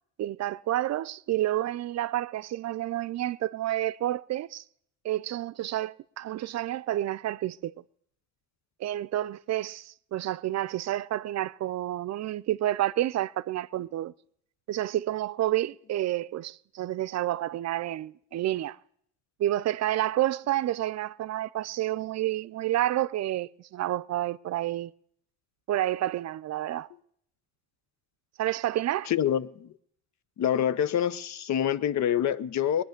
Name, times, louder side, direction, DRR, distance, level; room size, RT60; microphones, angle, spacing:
voice 1, 0.2-4.6 5.0-7.7 8.8-14.1 14.7-18.8 19.4-24.9 25.7-26.9 28.4-29.1, right 14 dB, 60° right, 0.5 m, -29 dB
voice 2, 29.1-29.7 30.4-32.8, left 9 dB, 65° left, 0.7 m, -26 dB
20.5 x 9.8 x 6.6 m
cardioid pair, 90°, 30 cm